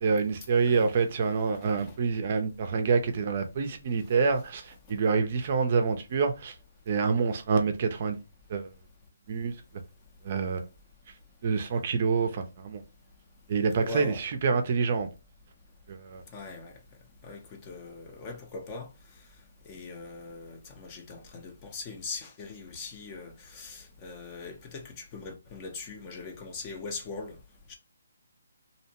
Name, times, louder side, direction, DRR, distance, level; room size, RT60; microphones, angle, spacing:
voice 1, 0.0-6.5 6.9-8.2 8.5-8.7 9.3-9.5 10.2-10.6 11.4-12.8 13.5-15.1 15.9-16.2, right 5 dB, 40° right, 0.4 m, -27 dB
voice 2, 13.8-14.2 16.3-16.7 17.2-18.9 19.7-27.4 27.7-27.8, left 3 dB, 20° left, 0.5 m, -41 dB
2.6 x 2.1 x 2.8 m
hypercardioid pair, 160°, 0 cm